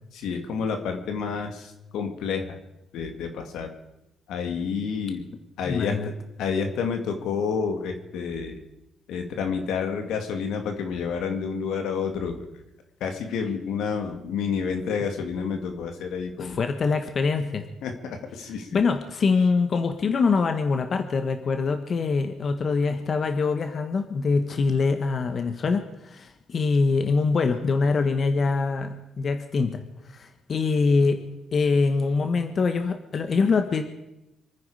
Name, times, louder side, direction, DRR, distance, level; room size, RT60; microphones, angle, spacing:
voice 1, 0.1-2.6 2.9-3.7 4.3-5.3 5.6-8.6 9.1-12.5 13.0-16.6 17.8-18.8, left 6 dB, 85° left, 5 dB, 2.2 m, -29 dB
voice 2, 5.6-6.1 16.4-17.6 18.7-29.8 30.1-31.2 31.5-33.8, left 4 dB, 50° left, 7 dB, 1.4 m, -24 dB
26.5 x 9.7 x 5.0 m, 0.90 s
cardioid pair, 90°, 0 cm